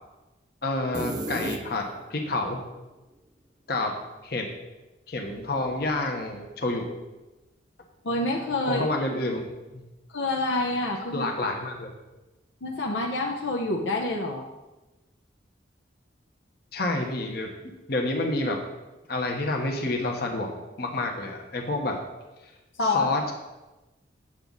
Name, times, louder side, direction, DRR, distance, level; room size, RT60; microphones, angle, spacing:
voice 1, 0.6-2.6 3.7-3.9 4.2-4.5 5.1-6.9 8.7-9.4 9.7-9.8 11.1-11.9 16.7-17.5 17.9-18.6 19.1-22.0 22.4-22.5 22.9-23.3, left 2 dB, 55° left, 2 dB, 1.1 m, -28 dB
sound 1, 0.9-2.2, right 2 dB, 20° right, 0.4 m, -32 dB
voice 2, 8.0-8.9 10.1-11.3 12.6-14.5 22.8-23.1, left 2 dB, 80° left, 0 dB, 0.8 m, -27 dB
8.9 x 7.2 x 4.0 m, 1.1 s
head